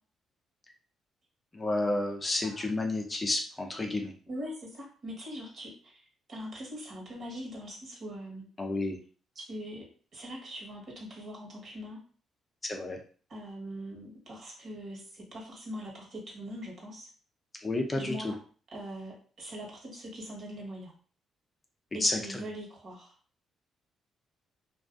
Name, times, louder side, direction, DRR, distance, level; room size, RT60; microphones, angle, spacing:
voice 1, 1.5-4.1 8.6-9.0 12.6-13.0 17.6-18.3 22.0-22.4, left 2 dB, 25° left, 2 dB, 0.5 m, -30 dB
voice 2, 4.3-8.5 9.3-9.8 10.1-12.0 13.3-17.1 17.9-18.3 18.7-20.9 21.9-23.1, equal, 55° right, -2 dB, 1.2 m, -42 dB
2.3 x 2.3 x 2.5 m, 0.41 s
cardioid pair, 90°, 0 cm